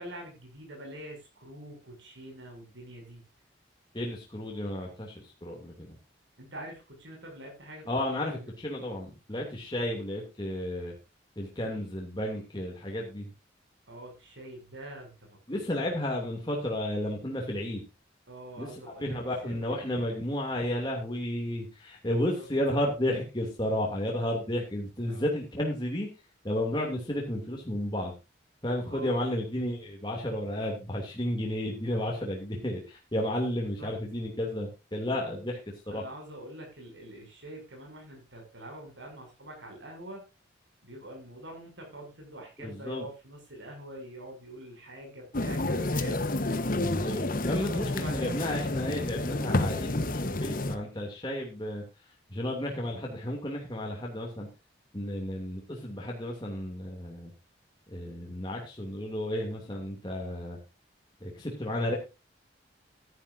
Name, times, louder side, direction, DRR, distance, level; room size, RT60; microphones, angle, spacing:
voice 1, 0.0-3.2 6.4-7.9 8.2-8.5 13.9-16.0 18.3-19.2 19.4-19.6 19.9-20.2 22.4-22.5 25.1-25.2 28.9-29.2 33.8-33.9 35.2-35.3 35.9-40.3 40.8-46.2 47.5-48.4, right 1 dB, 75° right, 1 dB, 6.8 m, -45 dB
voice 2, 3.9-6.0 7.9-10.9 11.4-13.3 15.5-17.8 18.6-26.1 26.4-28.1 28.6-35.6 35.9-36.0 42.6-43.0 46.9-51.8 52.3-54.5 54.9-57.3 57.9-60.6 61.2-62.0, left 1 dB, 25° left, -1 dB, 2.7 m, -32 dB
sound 1, 45.3-50.8, left 2 dB, 50° left, 1.1 m, -30 dB
14.5 x 11.5 x 2.7 m, 0.27 s
head